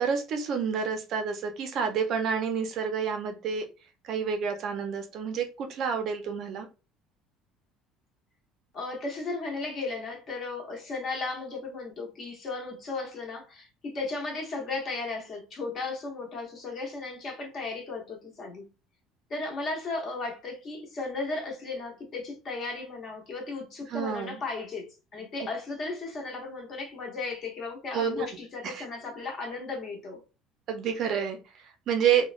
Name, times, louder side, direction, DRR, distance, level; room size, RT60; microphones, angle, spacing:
voice 1, 0.0-3.7 4.0-6.7 23.9-24.4 27.9-28.3 28.6-28.8 30.7-32.2, right 7 dB, 45° right, 0.4 m, -29 dB
voice 2, 8.7-18.7 19.3-30.2, left 3 dB, 35° left, 0.8 m, -35 dB
3.0 x 2.1 x 2.4 m
cardioid pair, 165°, 0 cm